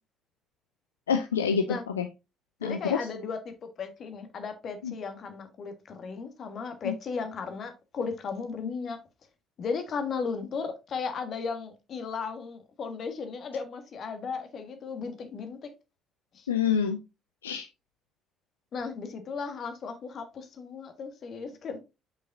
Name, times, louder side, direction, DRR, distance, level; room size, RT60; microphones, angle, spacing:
voice 1, 1.1-2.1 2.6-3.0 4.8-4.9 6.8-6.9 16.5-17.0 17.4-17.7, left 7 dB, 75° left, 0.4 m, -27 dB
voice 2, 2.6-9.0 9.6-15.7 16.3-16.5 18.7-21.8, left 5 dB, 45° left, 1.5 m, -35 dB
7.9 x 5.5 x 2.6 m
figure-of-eight pair, 50°, 0 cm